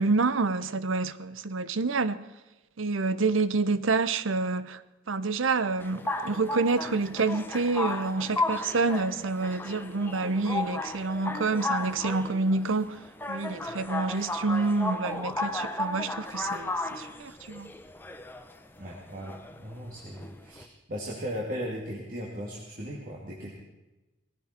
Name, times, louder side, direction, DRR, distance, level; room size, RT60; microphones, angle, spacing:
voice 1, 0.0-2.2 2.8-4.8 5.1-13.0 13.3-17.7, right 3 dB, 75° right, 0.8 m, -28 dB
sound 1, 5.8-20.6, left 2 dB, 10° left, 0.8 m, -34 dB
voice 2, 18.8-23.5, equal, 40° right, 2.3 m, -37 dB
19.0 x 15.5 x 4.3 m
head